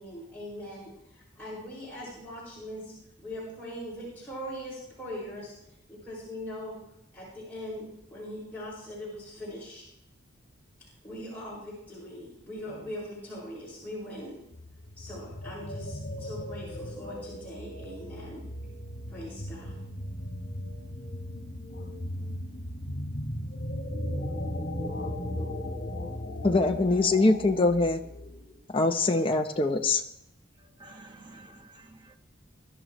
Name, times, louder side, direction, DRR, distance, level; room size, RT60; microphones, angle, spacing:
voice 1, 0.0-5.5 5.9-6.8 7.1-9.8 10.8-14.4 15.0-18.5 19.1-19.8, left 1 dB, 10° left, 5.7 m, -41 dB
sound 1, 14.5-28.7, left 1 dB, 60° left, 1.7 m, -37 dB
voice 2, 26.4-28.0 28.7-30.0, left 2 dB, 25° left, 0.8 m, -23 dB
voice 3, 30.8-32.2, right 2 dB, 25° right, 1.1 m, -50 dB
22.5 x 12.0 x 3.1 m
head